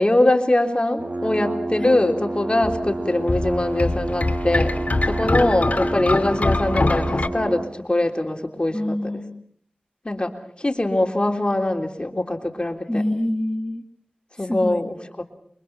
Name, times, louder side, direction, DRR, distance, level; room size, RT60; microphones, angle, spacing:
voice 1, 0.0-4.8 5.1-9.1 10.1-10.3 10.6-13.0 14.4-15.2, left 1 dB, 35° left, 3 dB, 3.5 m, -22 dB
sound 1, 1.0-7.8, right 2 dB, 55° right, 2.2 m, -29 dB
sound 2, 2.6-7.3, left 2 dB, 60° left, 2.5 m, -23 dB
voice 2, 8.7-9.4 12.9-13.8 14.3-14.8, left 1 dB, 15° left, 0 dB, 2.0 m, -26 dB
29.5 x 23.5 x 5.9 m, 0.63 s
wide cardioid pair, 65°, 3 cm